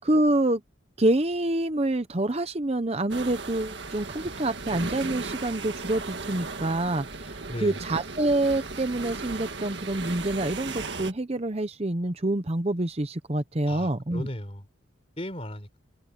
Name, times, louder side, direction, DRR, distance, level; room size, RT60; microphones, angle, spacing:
voice 1, 0.0-0.6 1.0-14.3, right 1 dB, 30° right, 0.8 m, -27 dB
sound 1, 3.1-11.1, right 3 dB, 60° right, 1.9 m, -36 dB
voice 2, 13.7-14.6 15.2-15.8, equal, 30° left, 4.7 m, -36 dB
head